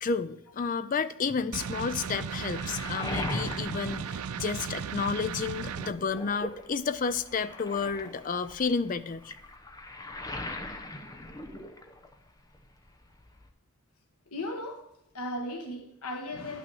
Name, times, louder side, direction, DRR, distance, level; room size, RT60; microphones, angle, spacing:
voice 1, 0.0-9.3, left 5 dB, 40° left, 0.4 m, -31 dB
sound 1, 1.5-5.9, right 6 dB, 85° right, 0.4 m, -36 dB
Waves surf, 1.9-5.0 5.4-12.3 12.5-13.5, left 1 dB, 15° left, 0.8 m, -40 dB
voice 2, 14.3-14.9 15.1-16.6, left 1 dB, 90° left, 1.3 m, -36 dB
11.0 x 6.2 x 6.1 m
head